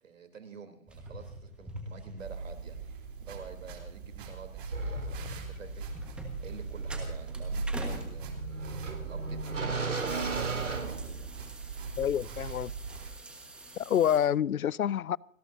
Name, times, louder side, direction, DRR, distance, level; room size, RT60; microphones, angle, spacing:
voice 1, 0.0-5.9 6.4-8.3 9.0-11.5 14.0-14.5, right 5 dB, 65° right, 3.5 m, -48 dB
sound 1, 0.9-14.2, right 2 dB, ahead, 1.4 m, -48 dB
sound 2, 2.2-13.1, right 5 dB, 40° right, 3.4 m, -41 dB
sound 3, 4.7-11.6, right 3 dB, 85° right, 4.5 m, -36 dB
voice 2, 12.0-12.7 13.8-15.2, left 9 dB, 85° left, 0.5 m, -27 dB
29.5 x 12.5 x 2.7 m
figure-of-eight pair, 150°, 42 cm